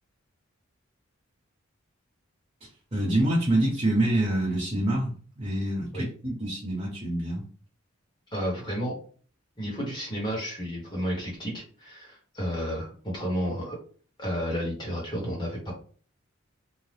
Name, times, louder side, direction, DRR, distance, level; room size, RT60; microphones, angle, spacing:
voice 1, 2.6-7.4, right 1 dB, 30° right, -4 dB, 0.9 m, -26 dB
voice 2, 8.3-8.9 9.6-13.8 14.2-15.7, equal, 20° left, -3 dB, 1.1 m, -31 dB
2.7 x 2.1 x 3.3 m, 0.43 s
head